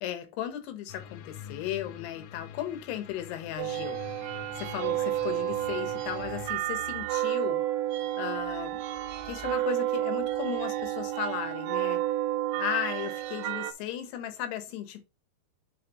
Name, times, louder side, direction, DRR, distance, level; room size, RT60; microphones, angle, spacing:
voice 1, 0.0-4.0 4.6-7.6 8.2-8.8 9.2-12.0 12.5-15.0, left 11 dB, 70° left, 3.0 m, -36 dB
sound 1, 0.9-6.6, left 9 dB, 90° left, 3.3 m, -46 dB
sound 2, 3.6-13.7, right 13 dB, 85° right, 3.1 m, -31 dB
8.9 x 4.3 x 3.0 m
omnidirectional pair, 5.3 m